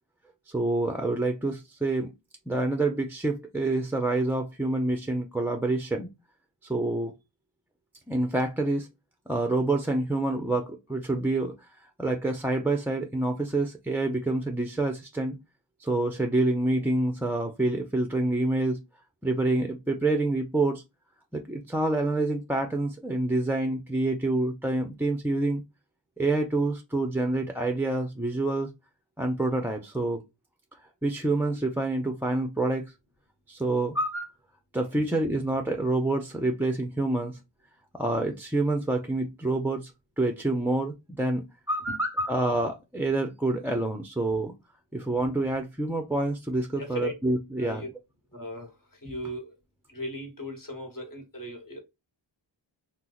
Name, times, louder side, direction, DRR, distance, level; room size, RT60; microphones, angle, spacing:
voice 1, 0.5-2.1 2.5-6.1 6.7-7.1 8.1-8.9 9.3-11.6 12.0-15.4 15.8-18.8 19.2-20.8 21.3-25.6 26.2-28.7 29.2-30.2 31.0-32.9 33.5-34.3 34.7-37.4 37.9-39.9 40.2-44.5 44.9-47.8, right 2 dB, 5° right, 0.4 m, -27 dB
voice 2, 46.8-47.1 47.6-47.9 48.3-48.7 49.0-49.5 49.9-51.8, left 1 dB, 40° left, 1.2 m, -37 dB
2.9 x 2.0 x 3.8 m
cardioid pair, 55°, 49 cm